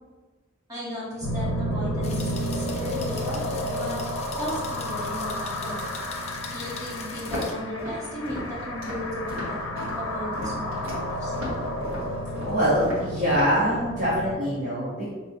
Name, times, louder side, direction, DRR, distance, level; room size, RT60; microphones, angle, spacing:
voice 1, 0.7-4.0 4.4-5.9 6.5-11.3, equal, 15° right, -9 dB, 1.4 m, -36 dB
sound 1, 1.2-14.3, equal, 65° left, 0.7 m, -31 dB
sound 2, 2.0-7.5, left 5 dB, 30° left, 0.3 m, -41 dB
Walk footsteps, 7.2-13.6, left 1 dB, 70° right, 1.3 m, -37 dB
voice 2, 12.5-15.1, equal, 35° right, -10 dB, 1.0 m, -24 dB
5.1 x 2.8 x 2.7 m, 1.3 s
head